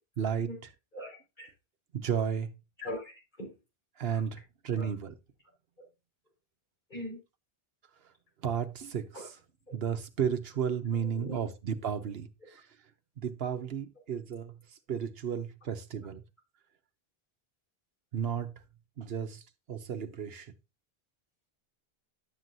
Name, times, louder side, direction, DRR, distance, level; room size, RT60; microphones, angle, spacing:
voice 1, 0.2-0.5 1.9-2.5 4.0-4.4 4.6-5.1 8.4-9.0 9.7-12.3 13.2-14.5 14.9-16.2 18.1-18.5 19.0-19.4 19.7-20.5, right 8 dB, 75° right, 1.1 m, -32 dB
voice 2, 0.9-1.5 2.8-3.5 4.1-4.2 4.7-4.9 5.8-5.9 6.9-7.2 9.1-9.3 9.7-9.8 11.0-11.5, equal, 50° left, 4.9 m, -41 dB
11.0 x 7.7 x 2.7 m
omnidirectional pair, 1.0 m